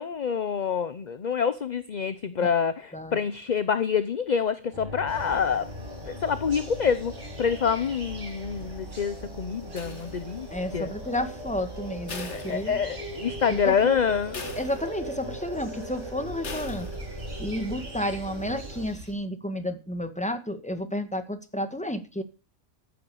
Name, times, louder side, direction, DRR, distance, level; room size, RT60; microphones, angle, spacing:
voice 1, 0.0-5.7 6.1-10.5 10.7-10.9 12.2-14.4, left 7 dB, 40° left, 0.8 m, -27 dB
sound 1, 4.7-18.9, right 1 dB, 20° right, 5.9 m, -40 dB
sound 2, 5.1-19.1, right 1 dB, 75° right, 3.3 m, -43 dB
sound 3, 9.8-10.6 12.1-13.2 13.6-13.7 14.3-15.2 16.4-17.2, left 4 dB, 65° left, 2.2 m, -40 dB
voice 2, 10.5-12.8 13.5-14.0 14.6-16.9 17.1-22.2, left 1 dB, 5° left, 1.9 m, -31 dB
14.5 x 8.8 x 7.1 m
omnidirectional pair, 1.3 m